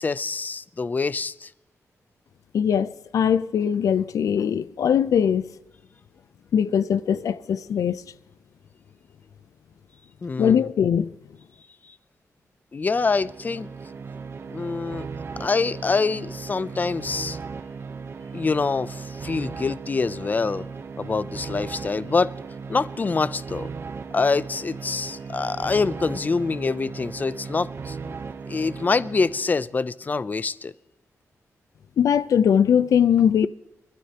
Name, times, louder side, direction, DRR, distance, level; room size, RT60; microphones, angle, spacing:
voice 1, 0.0-1.5 10.2-10.7 11.9-12.0 12.7-13.7 14.5-15.1 15.4-17.4 18.3-20.7 21.0-22.3 22.7-23.7 24.1-28.2 28.5-30.7, left 4 dB, 30° left, 0.5 m, -25 dB
voice 2, 2.5-5.4 6.5-8.0 10.4-11.1 32.0-33.5, left 8 dB, 85° left, 0.5 m, -21 dB
sound 1, 12.8-29.7, right 5 dB, 50° right, 0.8 m, -37 dB
24.0 x 12.5 x 2.9 m
wide cardioid pair, 135°, 6 cm